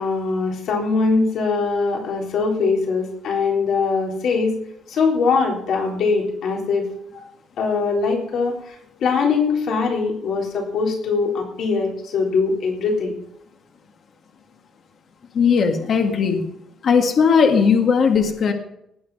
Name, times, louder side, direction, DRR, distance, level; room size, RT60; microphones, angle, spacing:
voice 1, 0.0-4.6 4.9-6.9 7.1-7.2 7.6-8.6 9.0-13.2, left 4 dB, 60° left, 0 dB, 3.7 m, -21 dB
voice 2, 15.4-16.5 16.8-18.5, left 6 dB, 45° left, 3 dB, 2.0 m, -17 dB
19.0 x 8.9 x 5.5 m, 0.76 s
cardioid pair, 170°, 0 cm